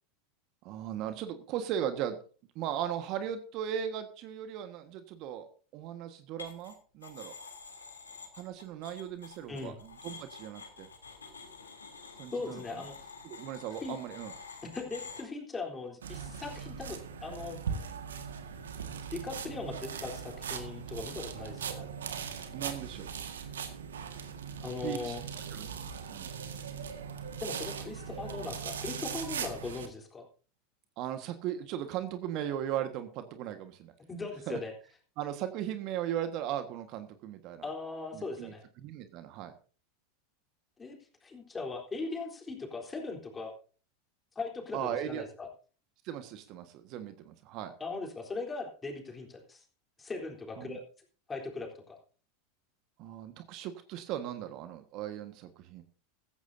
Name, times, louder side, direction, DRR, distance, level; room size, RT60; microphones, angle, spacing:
voice 1, 0.6-2.2 2.5-5.5 5.7-7.3 8.3-10.9 12.1-12.8 13.2-14.3 22.5-23.1 24.8-25.1 25.5-25.7 26.1-26.3 31.0-33.9 34.5-34.6 35.2-37.7 38.1-39.5 44.7-45.2 46.0-47.7 50.6-50.8 53.0-55.8, right 10 dB, 50° right, 9 dB, 1.5 m, -37 dB
sound 1, 6.4-6.7 7.0-15.2, left 4 dB, 85° left, 3.2 m, -48 dB
voice 2, 12.3-13.0 13.8-14.0 14.6-17.6 19.1-21.9 24.6-25.2 27.4-30.3 34.1-34.7 37.6-38.6 40.8-43.5 44.4-45.5 47.8-49.6 50.0-50.8 51.3-52.0, left 3 dB, 20° left, 2 dB, 3.8 m, -39 dB
sound 2, 16.0-29.9, right 7 dB, 75° right, 1.8 m, -40 dB
15.0 x 14.5 x 2.7 m, 0.39 s
hypercardioid pair, 90°, 0 cm